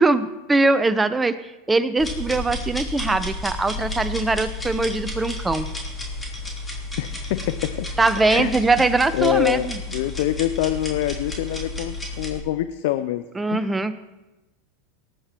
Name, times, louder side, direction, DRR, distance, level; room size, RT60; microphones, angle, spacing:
voice 1, 0.0-1.4 1.7-5.7 8.0-9.8 13.4-13.9, right 3 dB, 10° right, 12 dB, 0.9 m, -21 dB
sound 1, 2.0-12.4, left 2 dB, 10° left, 3.2 m, -32 dB
voice 2, 7.0-7.9 8.2-8.5 9.1-13.2 13.5-13.7, left 14 dB, 70° left, 11 dB, 0.6 m, -25 dB
19.0 x 8.8 x 4.6 m, 1.0 s
hypercardioid pair, 110°, 0 cm